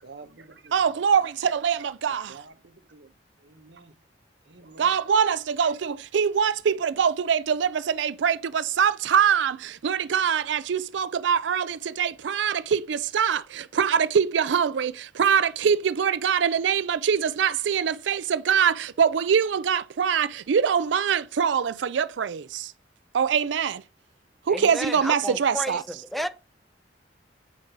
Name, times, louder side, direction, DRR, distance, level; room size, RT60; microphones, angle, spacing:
voice 1, 0.0-0.7 2.3-3.1 3.4-3.9 4.5-5.0, right 4 dB, 70° right, 1.1 m, -48 dB
voice 2, 0.7-2.4 4.8-22.7 23.1-23.8 24.5-25.8, right 7 dB, 90° right, 0.4 m, -24 dB
voice 3, 24.5-26.3, equal, ahead, 0.6 m, -32 dB
8.6 x 4.7 x 5.9 m
head